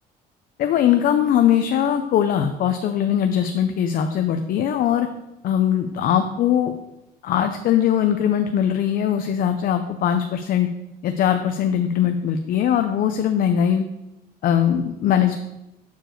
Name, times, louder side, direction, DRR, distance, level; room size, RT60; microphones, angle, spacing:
voice 1, 0.6-5.1 5.4-6.7 7.2-10.7 11.0-13.9 14.4-15.3, left 9 dB, 60° left, 7 dB, 0.5 m, -20 dB
6.8 x 4.5 x 4.5 m, 0.92 s
cardioid pair, 110°, 17 cm